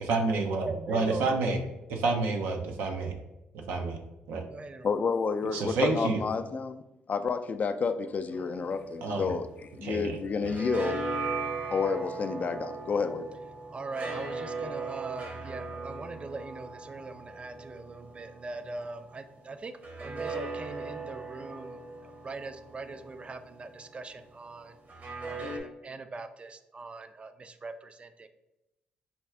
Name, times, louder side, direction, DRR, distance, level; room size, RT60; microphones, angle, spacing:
voice 1, 0.0-1.6 1.9-3.1 3.5-4.0 4.3-4.4 5.5-6.2 9.0-9.4 9.8-10.5, right 3 dB, 80° right, 3 dB, 0.6 m, -29 dB
voice 2, 0.6-1.3 4.5-5.1 13.5-24.8 25.3-28.3, right 3 dB, 30° right, 10 dB, 0.4 m, -41 dB
voice 3, 4.8-6.8 7.1-9.5 9.8-11.0 11.7-13.3, left 5 dB, 45° left, 9 dB, 0.3 m, -30 dB
sound 1, 8.3-10.0 10.3-19.0 19.8-23.9 24.9-25.6, right 3 dB, 50° right, 1.0 m, -38 dB
4.2 x 2.3 x 3.3 m, 0.92 s
supercardioid pair, 65°, 4 cm